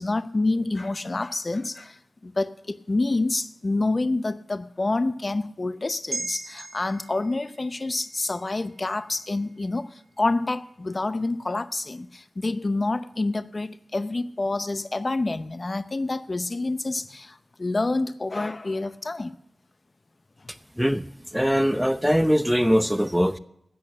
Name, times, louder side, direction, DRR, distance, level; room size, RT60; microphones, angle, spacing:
voice 1, 0.0-19.3 20.4-20.5, left 2 dB, 45° left, 0.7 m, -28 dB
sound 1, 6.1-10.6 11.0-11.1, right 3 dB, 65° right, 1.4 m, -40 dB
voice 2, 21.3-23.4, equal, 5° right, 0.8 m, -21 dB
13.0 x 8.3 x 6.6 m
cardioid pair, 45°, 0 cm